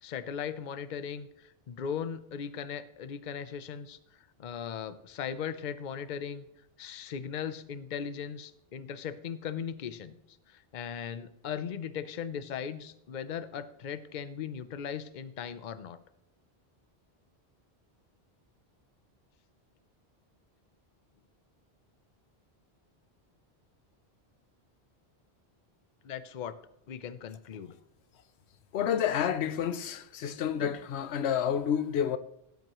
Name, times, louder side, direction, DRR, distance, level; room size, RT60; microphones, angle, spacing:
voice 1, 0.0-4.0 4.4-6.4 6.8-10.2 10.5-16.0 26.0-26.6 26.9-27.7, left 7 dB, 50° left, 0.7 m, -38 dB
voice 2, 28.7-32.2, left 8 dB, 80° left, 0.9 m, -29 dB
16.5 x 9.4 x 3.0 m
omnidirectional pair, 1.1 m